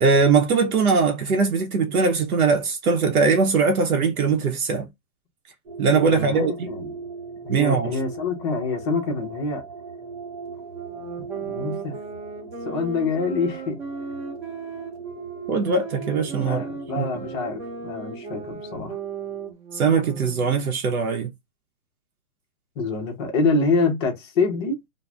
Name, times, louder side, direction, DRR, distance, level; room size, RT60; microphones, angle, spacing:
voice 1, 0.0-4.9 5.8-6.5 7.5-8.0 15.5-16.6 17.0-17.1 19.7-21.3, right 5 dB, 85° right, 0.7 m, -21 dB
sound 1, 5.7-19.5, right 4 dB, 60° right, 0.9 m, -40 dB
voice 2, 6.1-7.0 7.4-9.6 11.2-12.0 12.7-13.8 16.3-19.0 22.8-24.8, left 4 dB, 20° left, 0.5 m, -26 dB
sound 2, 10.7-20.7, right 5 dB, 30° right, 0.9 m, -36 dB
2.4 x 2.0 x 3.2 m
hypercardioid pair, 135°, 42 cm